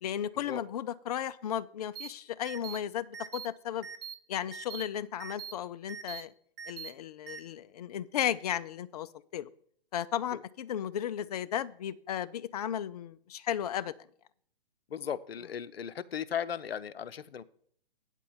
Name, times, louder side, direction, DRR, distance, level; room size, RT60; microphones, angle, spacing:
voice 1, 0.0-3.9 4.3-6.3 6.7-9.1 9.3-9.5 9.9-13.9, left 10 dB, 40° left, 14 dB, 0.4 m, -34 dB
sound 1, 2.0-2.1 2.5-2.8 3.1-3.5 3.8-4.1 4.5-4.8 5.2-5.5 5.9-6.2 6.6-6.9 7.3-7.4, right 8 dB, 65° right, 1.3 m, -42 dB
voice 2, 14.9-17.4, left 8 dB, 90° left, 15 dB, 0.6 m, -36 dB
8.8 x 4.5 x 7.1 m, 0.62 s
hypercardioid pair, 145°, 30 cm